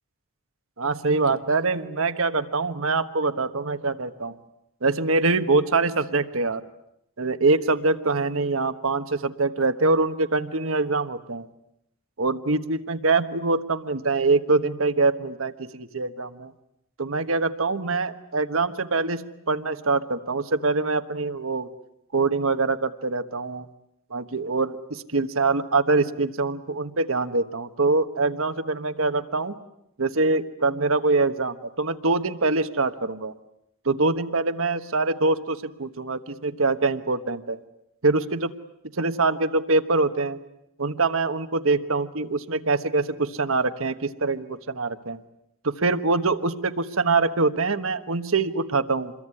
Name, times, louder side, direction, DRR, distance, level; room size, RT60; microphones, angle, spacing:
voice 1, 0.8-4.3 4.8-6.6 7.2-11.5 12.2-16.5 17.0-21.7 22.1-23.7 24.1-29.6 30.0-33.3 33.8-37.6 38.0-38.5 39.0-40.4 40.8-45.2 45.6-49.1, right 3 dB, 75° right, 10 dB, 1.3 m, -24 dB
27.0 x 22.0 x 9.8 m, 0.80 s
head